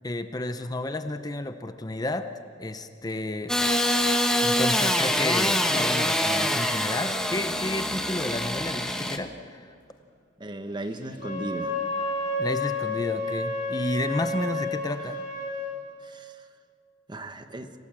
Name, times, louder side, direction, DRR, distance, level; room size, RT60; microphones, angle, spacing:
voice 1, 0.0-2.3 2.6-3.6 4.4-9.7 12.4-15.2, left 1 dB, 20° left, 0.7 m, -31 dB
Engine starting / Sawing, 3.5-9.2, left 1 dB, 5° left, 1.2 m, -25 dB
voice 2, 10.4-11.8 16.0-16.5 17.1-17.7, right 1 dB, 25° right, 1.1 m, -36 dB
Wind instrument woodwind instrument, 11.1-15.6, left 2 dB, 45° left, 6.8 m, -30 dB
26.5 x 17.5 x 7.4 m
head